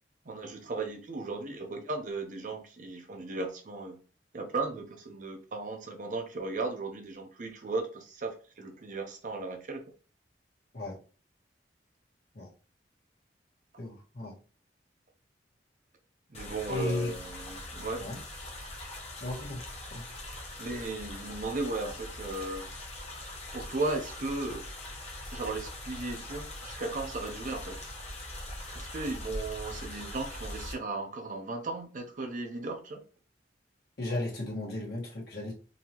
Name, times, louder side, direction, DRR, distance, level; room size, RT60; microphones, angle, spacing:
voice 1, 0.2-4.0 4.3-9.8 16.3-18.0 20.6-22.7 23.5-24.6 25.3-27.8 28.7-33.0, right 3 dB, 45° right, 0.6 m, -36 dB
voice 2, 13.8-14.3 16.7-17.1 18.0-18.2 19.2-19.6 19.9-20.0 34.0-35.5, left 1 dB, 65° left, 1.6 m, -35 dB
sound 1, 16.3-30.7, left 1 dB, 40° left, 1.0 m, -42 dB
3.9 x 2.8 x 2.9 m
head